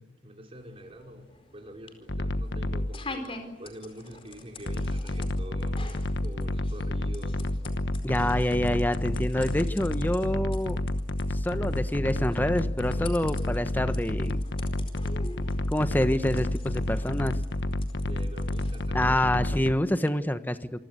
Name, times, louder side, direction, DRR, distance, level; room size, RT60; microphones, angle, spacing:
voice 1, 0.0-3.3 3.6-5.8 6.2-7.4 18.0-19.5, right 1 dB, 35° right, 2 dB, 5.2 m, -45 dB
sound 1, 0.5-20.1, left 2 dB, 30° left, 4.5 m, -47 dB
sound 2, 2.1-2.9 4.7-19.7, left 1 dB, 80° left, 1.2 m, -30 dB
voice 2, 8.0-10.8 11.3-14.4 15.7-17.4 18.9-20.8, left 1 dB, 10° left, 10 dB, 1.3 m, -27 dB
28.0 x 24.5 x 8.3 m, 0.99 s
head